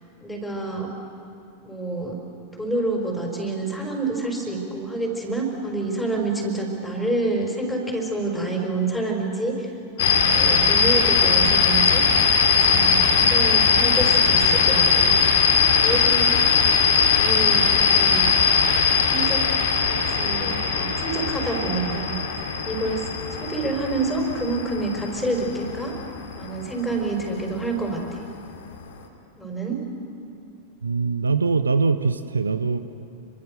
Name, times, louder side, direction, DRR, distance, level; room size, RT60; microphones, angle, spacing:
voice 1, 0.2-1.0 1.6-2.2 2.6-9.7 10.0-12.0 12.4-15.2 15.8-16.3 17.1-18.3 19.1-19.4 19.8-22.2 22.6-23.0 23.3-25.9 26.4-28.2 29.4-29.8, right 2 dB, 5° left, 1 dB, 5.3 m, -28 dB
sound 1, 10.0-26.6, left 6 dB, 60° left, 2.7 m, -20 dB
voice 2, 30.8-32.8, right 4 dB, 75° right, 11 dB, 1.0 m, -22 dB
29.5 x 23.5 x 6.8 m, 2.5 s
figure-of-eight pair, 90°, 0 cm